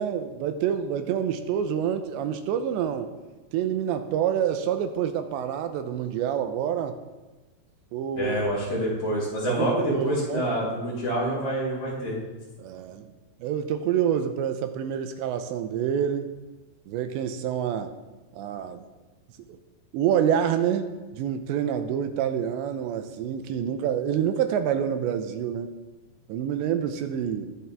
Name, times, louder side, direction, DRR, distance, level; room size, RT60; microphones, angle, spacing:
voice 1, 0.0-3.1 3.5-7.0 7.9-8.3 9.5-10.5 12.6-13.1 13.4-16.3 16.9-17.9 18.3-18.8 19.5-19.6 19.9-25.7 26.3-27.6, right 9 dB, 85° right, 8 dB, 2.9 m, -27 dB
voice 2, 8.2-12.2, right 1 dB, 35° left, -6 dB, 5.9 m, -27 dB
21.5 x 8.8 x 3.6 m, 1.2 s
omnidirectional pair, 5.2 m